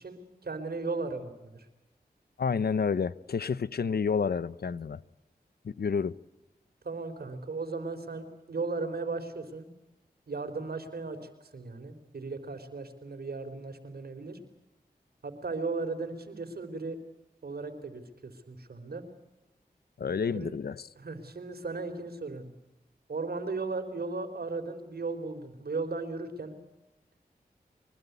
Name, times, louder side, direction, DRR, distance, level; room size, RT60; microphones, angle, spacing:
voice 1, 0.0-1.7 6.8-9.7 10.3-11.2 11.5-14.4 15.2-17.0 17.4-19.0 20.3-20.5 21.0-22.5 23.1-26.5, right 3 dB, 75° right, 4.0 m, -36 dB
voice 2, 2.4-5.0 5.6-6.2 20.0-20.9, left 6 dB, 75° left, 0.8 m, -29 dB
24.5 x 21.0 x 8.3 m
cardioid pair, 40°, 16 cm